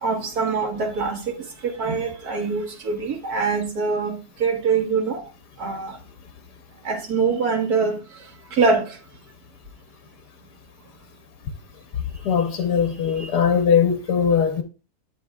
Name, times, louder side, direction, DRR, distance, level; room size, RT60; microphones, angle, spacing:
voice 1, 0.0-1.3 1.6-5.2 5.6-6.0 6.8-8.0 8.5-9.0 13.2-13.3, right 4 dB, 70° right, 2.0 m, -24 dB
voice 2, 12.2-14.6, left 7 dB, 80° left, 1.4 m, -20 dB
9.9 x 8.1 x 2.3 m
omnidirectional pair, 1.8 m